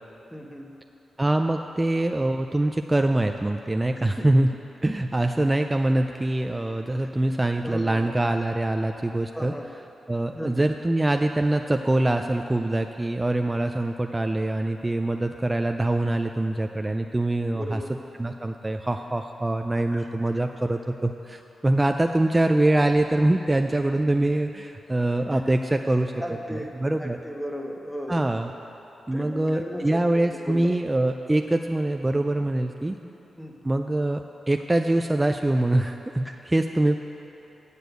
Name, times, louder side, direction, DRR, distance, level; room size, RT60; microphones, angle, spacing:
voice 1, 0.3-0.7 4.2-4.3 7.0-7.1 7.6-8.0 9.3-9.7 10.3-10.7 17.5-17.9 19.9-20.1 26.2-26.7 27.0-28.2 29.1-30.0 30.3-30.7 33.0-33.1 33.4-33.6 36.2-36.3, equal, 5° left, 2 dB, 0.9 m, -35 dB
voice 2, 1.2-4.5 4.8-9.5 10.1-17.8 18.2-26.1 26.5-27.2 28.1-28.5 29.1-33.0 33.6-37.0, right 1 dB, 15° right, 5 dB, 0.3 m, -24 dB
8.1 x 6.8 x 7.8 m, 2.9 s
cardioid pair, 100°, 0 cm